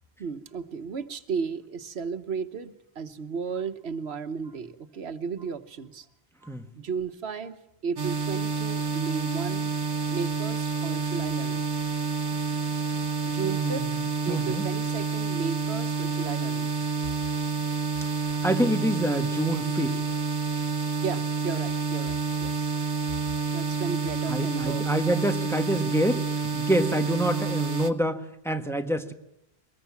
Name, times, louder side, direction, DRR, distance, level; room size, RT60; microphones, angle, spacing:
voice 1, 0.2-6.1 6.4-7.6 7.8-9.7 10.1-11.6 13.2-16.7 21.0-22.7 23.5-24.9 25.3-25.5, right 5 dB, 85° right, 10 dB, 1.3 m, -34 dB
sound 1, 8.0-27.9, right 4 dB, 50° right, 1.2 m, -29 dB
voice 2, 13.4-13.9 14.3-14.6 18.4-20.0 24.3-26.3 26.5-29.1, right 1 dB, 5° left, 5 dB, 1.4 m, -27 dB
23.5 x 20.0 x 7.3 m, 0.84 s
omnidirectional pair, 1.0 m